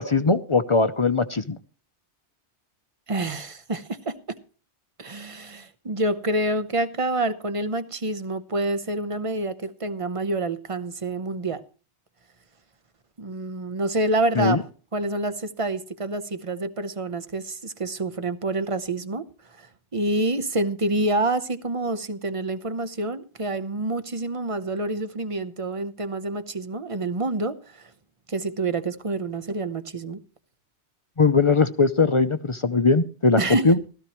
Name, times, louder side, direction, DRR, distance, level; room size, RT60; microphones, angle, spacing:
voice 1, 0.0-1.6 14.4-14.6 31.2-33.4 33.6-33.8, left 4 dB, 35° left, 0.6 m, -20 dB
voice 2, 3.1-4.4 5.0-11.6 13.2-14.7 14.9-19.3 19.6-27.9 28.3-30.2 33.4-33.7, right 2 dB, 30° right, 0.9 m, -27 dB
16.5 x 13.5 x 3.1 m
omnidirectional pair, 1.1 m